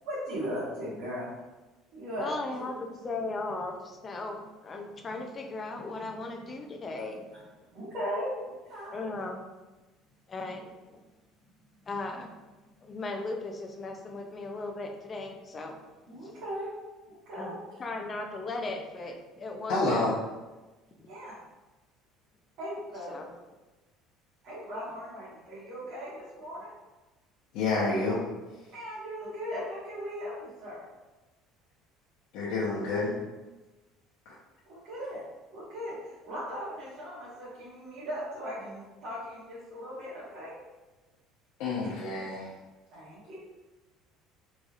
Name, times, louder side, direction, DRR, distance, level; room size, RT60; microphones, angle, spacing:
voice 1, 0.0-1.3 1.9-2.7 7.3-7.4 7.7-9.0 16.1-16.7 17.1-17.6 21.1-21.4 22.6-23.2 24.4-26.7 28.7-30.8 34.7-35.2 35.5-40.5 42.9-43.4, equal, 60° right, -11 dB, 1.5 m, -38 dB
voice 2, 2.2-7.2 8.9-9.4 10.3-11.0 11.9-12.3 12.8-15.8 16.2-16.3 17.4-17.5 17.8-20.1 21.0-21.1 23.1-23.3, left 3 dB, 25° left, 3 dB, 0.4 m, -37 dB
voice 3, 19.7-20.1 27.5-28.2 32.3-33.1 34.2-34.3 41.6-42.5, left 3 dB, 70° left, -8 dB, 0.8 m, -28 dB
4.0 x 3.1 x 2.4 m, 1.2 s
cardioid pair, 150°, 0 cm